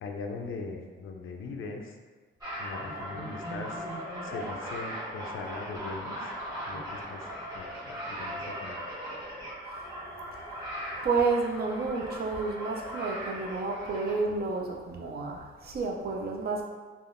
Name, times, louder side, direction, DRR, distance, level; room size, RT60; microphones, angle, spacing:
voice 1, 0.0-2.0 2.6-3.9 4.2-6.3 6.6-8.9, left 3 dB, 75° left, 3 dB, 0.4 m, -40 dB
sound 1, 2.4-14.2, equal, 20° right, 1.1 m, -38 dB
voice 2, 11.0-16.6, right 4 dB, 50° right, 0 dB, 0.4 m, -30 dB
3.4 x 2.3 x 2.5 m, 1.4 s
wide cardioid pair, 155°, 21 cm